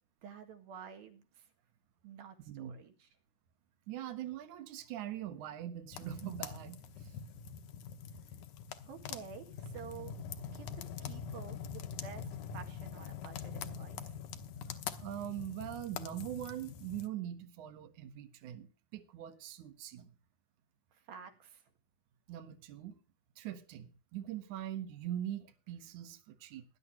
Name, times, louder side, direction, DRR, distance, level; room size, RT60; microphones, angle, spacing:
voice 1, 0.2-1.5 2.0-3.1 8.9-10.1 10.5-14.1 20.9-21.6, right 7 dB, 85° right, 3.7 m, -50 dB
voice 2, 2.5-2.8 3.9-7.2 14.7-20.1 22.3-23.0 23.4-26.7, right 11 dB, 65° right, 2.7 m, -42 dB
sound 1, 5.9-17.1, left 7 dB, 70° left, 2.3 m, -44 dB
19.0 x 11.0 x 3.1 m
omnidirectional pair, 4.1 m